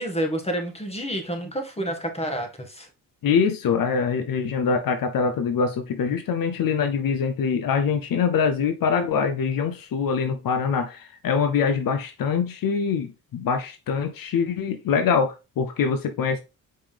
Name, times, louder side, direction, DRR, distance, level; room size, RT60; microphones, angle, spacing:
voice 1, 0.0-2.9, right 1 dB, 15° left, 2.0 m, -29 dB
voice 2, 3.2-16.4, left 6 dB, 70° left, 0.8 m, -24 dB
5.4 x 5.1 x 3.5 m
cardioid pair, 65°, 36 cm